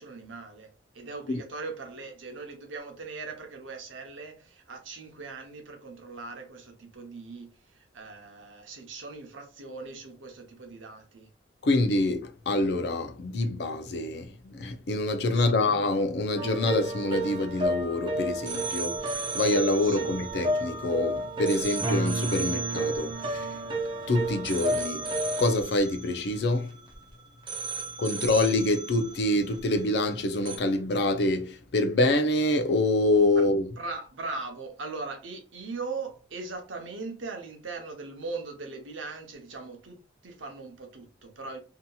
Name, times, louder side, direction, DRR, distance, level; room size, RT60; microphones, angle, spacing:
voice 1, 0.0-11.3 15.3-15.6 19.8-20.1 27.8-27.9 33.3-33.4 33.8-41.6, right 3 dB, 80° right, 0.8 m, -40 dB
voice 2, 11.6-23.6 24.1-25.1 25.4-26.7 28.0-33.8, left 2 dB, 60° left, 0.4 m, -26 dB
sound 1, 16.4-27.0 27.5-30.2 30.5-30.6, right 1 dB, 25° right, 0.5 m, -31 dB
2.8 x 2.7 x 2.2 m
head